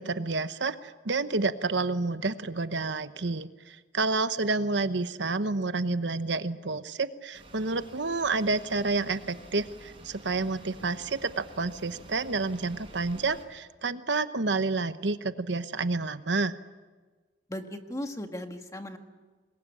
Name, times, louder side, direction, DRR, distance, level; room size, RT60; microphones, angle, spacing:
voice 1, 0.0-16.6, right 3 dB, 70° right, 11 dB, 1.0 m, -29 dB
sound 1, 7.3-13.4, right 1 dB, 30° right, 7.2 m, -50 dB
voice 2, 17.5-19.0, left 1 dB, 15° left, 5 dB, 1.7 m, -37 dB
26.0 x 22.0 x 9.8 m, 1.3 s
head